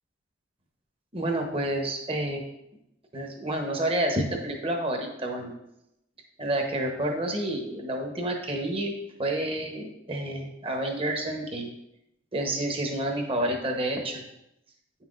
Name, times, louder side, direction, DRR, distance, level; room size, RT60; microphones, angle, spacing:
voice 1, 1.1-2.4 3.1-5.5 6.4-8.9 9.2-11.7 12.3-14.2, right 1 dB, 30° right, 2 dB, 1.0 m, -29 dB
8.8 x 5.7 x 2.5 m, 0.83 s
head